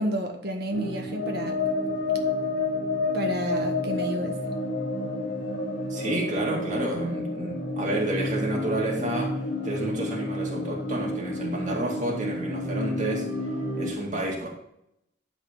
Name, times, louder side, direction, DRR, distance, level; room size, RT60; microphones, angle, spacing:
voice 1, 0.0-1.6 3.1-4.4, right 1 dB, 55° right, 3 dB, 1.6 m, -30 dB
sound 1, 0.7-13.9, left 2 dB, 60° left, 2.5 m, -30 dB
voice 2, 5.9-13.3 13.7-14.5, right 1 dB, 40° right, -2 dB, 2.0 m, -30 dB
12.0 x 4.2 x 5.5 m, 0.78 s
head